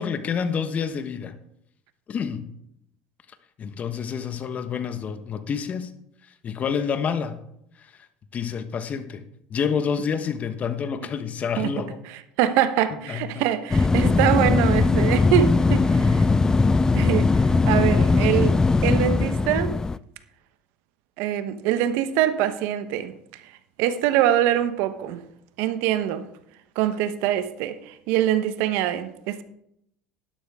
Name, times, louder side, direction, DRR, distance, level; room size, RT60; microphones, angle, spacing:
voice 1, 0.0-1.3 2.1-2.5 3.6-5.9 6.4-7.4 8.3-9.2 9.5-12.0 13.1-13.2 15.8-16.4, left 6 dB, 40° left, 1.3 m, -28 dB
voice 2, 12.0-16.2 16.9-17.3 17.7-19.8 21.2-23.1 23.4-23.5 23.8-25.2 25.6-26.2 26.7-29.4, right 11 dB, 70° right, 1.0 m, -24 dB
sound 1, 13.7-20.0, left 3 dB, 15° left, 0.4 m, -20 dB
12.0 x 11.0 x 3.6 m
hypercardioid pair, 85°, 4 cm